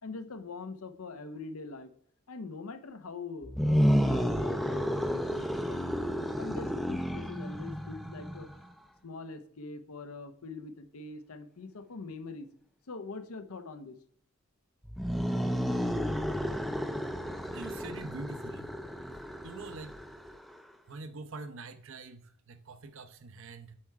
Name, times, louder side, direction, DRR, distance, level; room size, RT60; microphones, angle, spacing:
voice 1, 0.0-1.9 2.3-6.1 6.4-8.5 9.0-12.5 12.9-14.0, left 3 dB, 75° left, 11 dB, 0.7 m, -43 dB
sound 1, 3.4-8.6 14.9-20.5, equal, ahead, 0.4 m, -31 dB
voice 2, 17.5-18.7 19.4-20.0 20.9-23.8, right 3 dB, 60° right, 9 dB, 0.7 m, -44 dB
8.7 x 4.5 x 4.7 m, 0.62 s
head